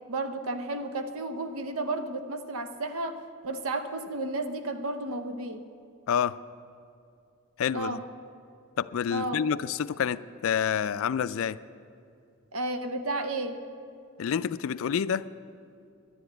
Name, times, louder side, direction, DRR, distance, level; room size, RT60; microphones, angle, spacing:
voice 1, 0.1-5.6 7.7-8.0 9.1-9.4 12.5-13.6, right 2 dB, 85° right, 8 dB, 0.8 m, -32 dB
voice 2, 7.6-8.0 8.8-11.6 14.2-15.2, left 8 dB, 75° left, 16 dB, 0.3 m, -28 dB
10.5 x 10.5 x 7.9 m, 2.4 s
head